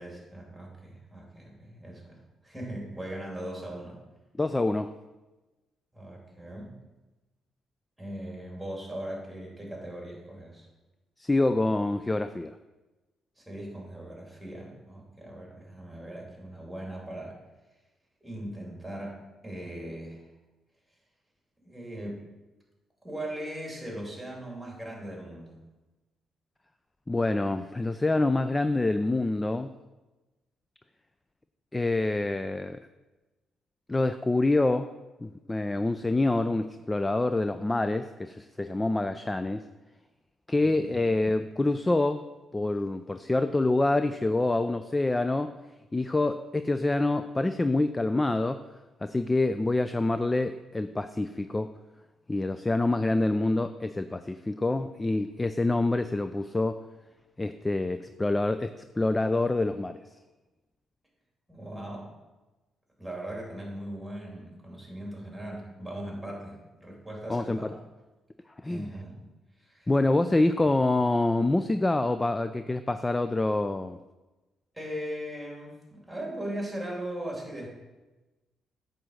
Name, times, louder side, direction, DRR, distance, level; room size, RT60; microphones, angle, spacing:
voice 1, 0.0-4.0 5.9-6.8 8.0-10.7 13.4-17.4 18.2-20.2 21.6-22.2 23.0-25.6 40.6-41.0 61.5-62.1 63.0-67.8 68.7-69.2 69.6-69.9 74.7-77.7, right 1 dB, 5° right, -2 dB, 2.9 m, -39 dB
voice 2, 4.4-4.9 11.2-12.5 27.1-29.7 31.7-32.8 33.9-34.9 35.2-39.6 40.5-42.3 42.5-45.6 45.9-48.6 49.0-51.7 52.3-56.8 57.4-60.0 67.3-67.8 68.6-68.8 69.9-74.0, left 2 dB, 15° left, 10 dB, 0.3 m, -26 dB
8.6 x 3.9 x 6.5 m, 1.1 s
cardioid pair, 90°, 0 cm